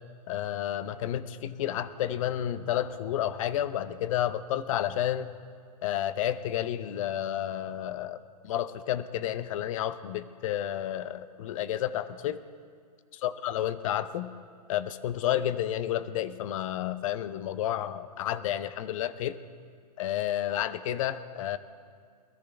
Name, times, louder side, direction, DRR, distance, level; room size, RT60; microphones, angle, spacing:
voice 1, 0.3-5.3 5.8-8.2 8.4-12.4 13.2-14.3 14.7-19.4 20.0-21.6, left 11 dB, 50° left, 14 dB, 0.8 m, -31 dB
21.5 x 13.5 x 3.4 m, 2.1 s
hypercardioid pair, 130°, 21 cm